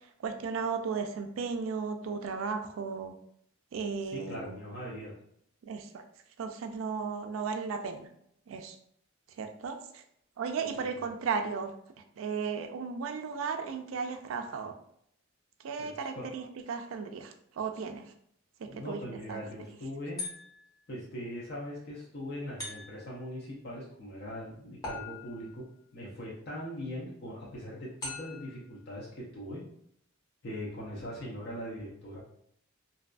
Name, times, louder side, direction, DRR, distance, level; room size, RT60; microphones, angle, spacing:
voice 1, 0.0-3.2 3.7-4.6 5.6-6.0 6.4-8.1 8.5-8.8 9.4-10.0 10.4-11.7 12.2-14.8 15.6-18.1 18.6-19.0 19.3-19.4, right 5 dB, 85° right, 6 dB, 0.4 m, -35 dB
voice 2, 4.1-5.1 10.7-10.8 15.8-16.3 18.7-20.2 20.9-25.6 25.9-29.6 30.4-32.2, equal, 55° left, -6 dB, 0.7 m, -41 dB
sound 1, 20.2-20.8 22.6-23.2 24.8-25.6 28.0-28.6, left 2 dB, 20° left, 0.8 m, -41 dB
2.7 x 2.4 x 2.2 m, 0.70 s
head